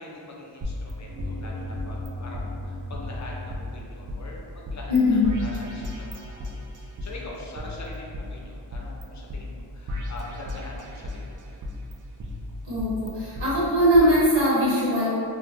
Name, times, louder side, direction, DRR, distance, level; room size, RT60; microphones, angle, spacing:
voice 1, 0.0-11.6, left 2 dB, 40° left, -2 dB, 0.6 m, -43 dB
sound 1, 0.6-2.1 2.3-2.4 2.9-4.2 4.6-5.0 5.2-7.1 7.5-9.0 9.3-9.4 9.9-11.2 11.6-13.5 13.9-14.0, left 1 dB, 45° right, 0.4 m, -35 dB
sound 2, 1.1-4.3, left 1 dB, 25° right, 0.9 m, -37 dB
voice 2, 4.9-5.3 12.7-15.1, equal, 70° right, -11 dB, 1.4 m, -20 dB
2.5 x 2.4 x 3.1 m, 2.5 s
wide cardioid pair, 60°, 47 cm